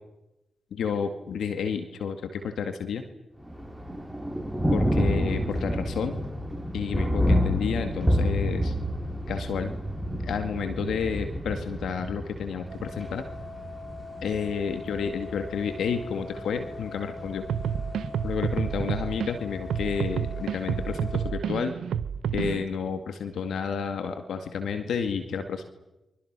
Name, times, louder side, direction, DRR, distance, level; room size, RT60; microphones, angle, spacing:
voice 1, 0.7-3.0 4.7-6.1 6.7-8.7 9.3-9.7 10.2-13.2 14.2-17.5 18.2-21.7 22.3-25.7, left 6 dB, 80° left, 7 dB, 2.1 m, -30 dB
Thunder, 3.4-21.4, equal, 5° right, 5.6 m, -30 dB
sound 1, 12.7-21.3, left 1 dB, 60° right, 5.6 m, -42 dB
sound 2, 17.4-19.3 19.7-22.6, right 8 dB, 80° right, 0.8 m, -29 dB
30.0 x 24.5 x 6.1 m, 0.96 s
supercardioid pair, 45°, 0 cm